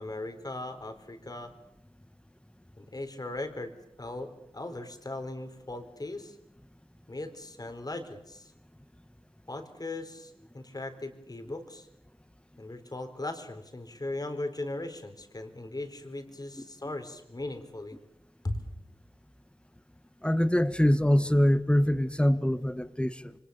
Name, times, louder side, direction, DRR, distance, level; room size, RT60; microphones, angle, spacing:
voice 1, 0.0-1.5 2.8-3.7 4.0-6.4 7.1-8.5 9.5-11.9 12.6-18.0 18.4-18.6, left 2 dB, 40° left, 7 dB, 4.2 m, -38 dB
voice 2, 20.2-23.4, equal, 10° left, 12 dB, 1.6 m, -24 dB
28.5 x 25.0 x 7.2 m, 0.81 s
wide cardioid pair, 60°, 10 cm